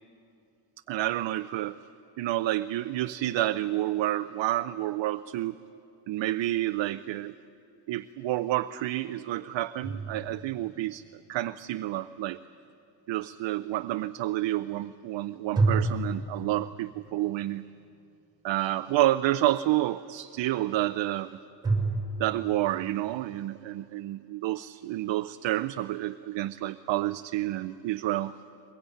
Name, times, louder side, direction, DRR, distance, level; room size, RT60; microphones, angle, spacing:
voice 1, 0.9-1.8 2.2-5.6 6.1-7.3 7.9-11.0 11.3-12.4 13.1-17.6 18.4-21.4 22.2-28.3, right 15 dB, 80° right, 9 dB, 0.7 m, -29 dB
sound 1, 9.8-11.0 15.5-17.1 21.6-22.8, right 3 dB, 10° right, 5.4 m, -29 dB
22.5 x 22.0 x 9.2 m, 2.7 s
cardioid pair, 140°, 44 cm